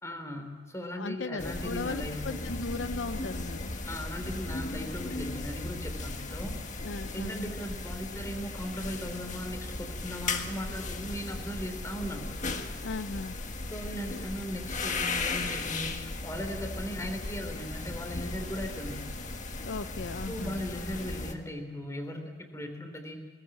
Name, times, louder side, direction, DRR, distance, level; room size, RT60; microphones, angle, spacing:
voice 1, 0.0-2.5 3.8-6.6 7.1-12.3 13.7-19.2 20.3-23.2, equal, 15° left, 6 dB, 3.3 m, -38 dB
voice 2, 1.0-3.7 6.8-7.5 12.8-13.4 19.6-20.6, left 3 dB, 75° left, 11 dB, 0.6 m, -37 dB
sound 1, 1.4-21.3, left 3 dB, 40° left, 1.6 m, -36 dB
21.5 x 18.5 x 8.7 m, 1.3 s
head